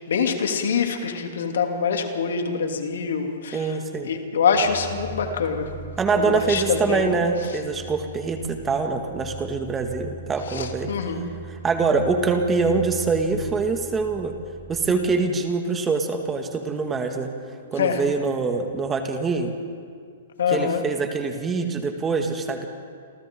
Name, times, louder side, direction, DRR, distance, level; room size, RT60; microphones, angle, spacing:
voice 1, 0.1-3.8 4.0-5.7 6.1-7.2 10.5-11.2 17.8-18.0 20.4-20.8, left 6 dB, 70° left, 3 dB, 2.9 m, -24 dB
voice 2, 3.5-4.1 6.0-10.9 11.5-14.3 14.7-17.3 17.7-19.5 20.5-22.7, right 4 dB, 15° right, 4 dB, 2.1 m, -24 dB
sound 1, 4.5-15.1, equal, 90° left, 5.8 m, -40 dB
28.0 x 27.5 x 3.9 m, 2.2 s
hypercardioid pair, 120°, 0 cm